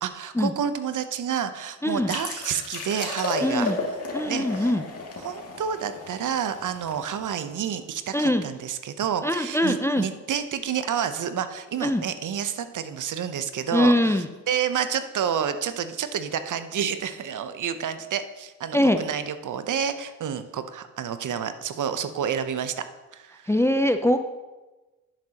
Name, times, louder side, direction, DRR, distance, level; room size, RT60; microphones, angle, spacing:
voice 1, 0.0-3.7 4.2-4.7 5.2-22.8 23.1-23.5, right 8 dB, 50° right, 11 dB, 0.8 m, -29 dB
voice 2, 1.8-2.1 3.4-3.8 4.1-4.8 8.1-8.4 9.2-10.1 11.8-12.0 13.7-14.3 18.7-19.0 23.5-24.2, left 1 dB, 5° left, 9 dB, 0.6 m, -22 dB
sound 1, 2.1-7.6, left 3 dB, 35° left, 2.4 m, -34 dB
10.5 x 9.0 x 2.9 m, 1.2 s
hypercardioid pair, 50°, 40 cm